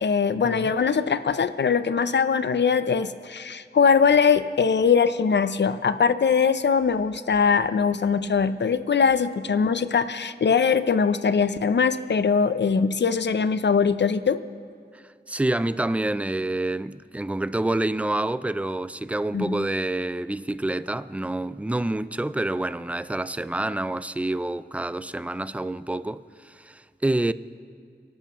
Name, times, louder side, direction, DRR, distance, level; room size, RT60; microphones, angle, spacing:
voice 1, 0.0-14.4 19.3-19.7, left 6 dB, 75° left, 0.5 m, -21 dB
voice 2, 15.3-27.3, right 1 dB, 5° right, 0.4 m, -27 dB
29.0 x 12.0 x 3.0 m
wide cardioid pair, 80°, 18 cm